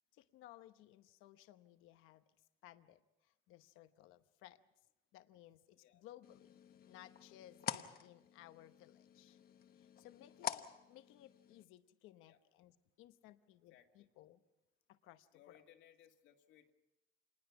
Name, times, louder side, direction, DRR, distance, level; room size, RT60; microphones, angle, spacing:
voice 1, 0.1-2.2 2.6-4.6 5.1-6.5 6.9-9.4 9.8-10.6 10.9-14.4 14.9-15.6, left 13 dB, 85° left, 10 dB, 0.9 m, -60 dB
sound 1, 6.2-11.6, left 9 dB, 45° left, 1.1 m, -48 dB
voice 2, 13.7-14.1 15.3-16.7, left 10 dB, 70° left, 4 dB, 2.0 m, -65 dB
27.0 x 20.0 x 5.9 m, 0.94 s
cardioid pair, 140°, 20 cm